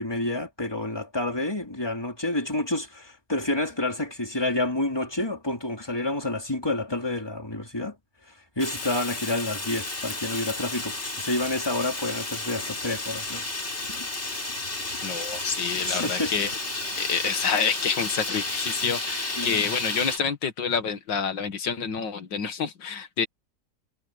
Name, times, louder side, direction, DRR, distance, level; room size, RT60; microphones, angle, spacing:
voice 1, 0.0-7.9 8.5-13.5 13.9-14.0 15.9-16.3 19.4-19.7, left 2 dB, 15° left, 3.5 m, -29 dB
Fire, 8.6-20.2, left 2 dB, 35° left, 4.0 m, -32 dB
voice 2, 15.0-16.5 17.0-23.3, left 6 dB, 80° left, 2.3 m, -28 dB
omnidirectional pair, 1.9 m